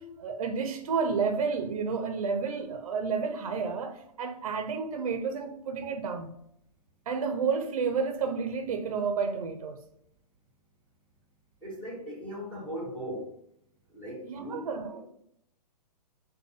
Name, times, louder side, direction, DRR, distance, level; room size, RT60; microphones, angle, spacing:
voice 1, 0.0-6.4 7.1-9.8 14.2-15.0, right 5 dB, 55° right, 0.4 m, -31 dB
voice 2, 11.6-13.3 13.9-15.0, equal, 5° left, 0.5 m, -39 dB
3.5 x 2.2 x 3.8 m
hypercardioid pair, 165°, 21 cm